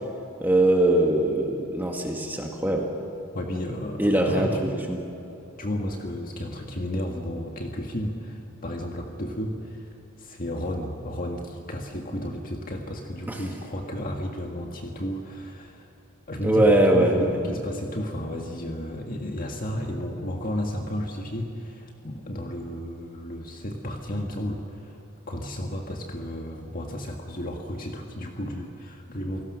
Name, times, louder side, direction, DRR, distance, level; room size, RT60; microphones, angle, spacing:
voice 1, 0.4-2.9 4.0-5.0 13.3-13.4 16.4-17.4, right 1 dB, 10° right, 0 dB, 2.0 m, -21 dB
voice 2, 3.3-4.8 5.6-9.9 10.2-15.9 16.3-25.0 25.3-29.4, equal, 40° left, 1 dB, 1.8 m, -33 dB
28.5 x 18.5 x 6.4 m, 3.0 s
head